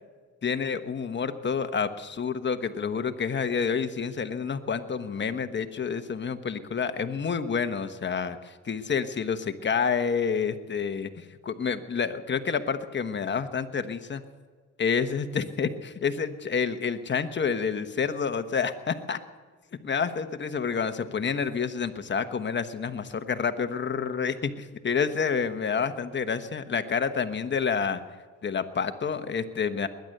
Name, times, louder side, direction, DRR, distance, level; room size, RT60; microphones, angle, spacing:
voice 1, 0.4-14.2 14.8-19.2 19.8-28.0 28.4-29.9, left 6 dB, 35° left, 9 dB, 1.2 m, -29 dB
20.5 x 10.5 x 6.7 m, 1.5 s
cardioid pair, 90°, 30 cm